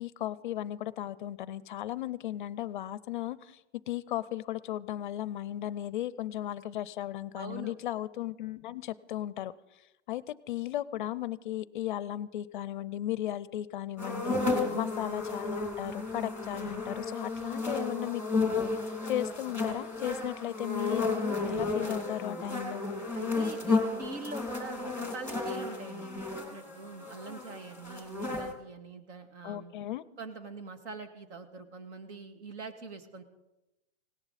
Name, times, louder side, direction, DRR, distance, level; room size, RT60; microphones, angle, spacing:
voice 1, 0.0-3.6 3.9-9.5 10.1-14.4 14.7-22.8 29.4-30.0, left 13 dB, 45° left, 19 dB, 0.5 m, -36 dB
voice 2, 7.4-7.7 14.4-14.8 23.1-29.7 30.2-33.2, right 3 dB, 70° right, 7 dB, 2.3 m, -43 dB
sound 1, 14.0-28.5, left 3 dB, 5° right, 2.2 m, -33 dB
18.5 x 17.5 x 4.1 m, 0.97 s
supercardioid pair, 160°, 36 cm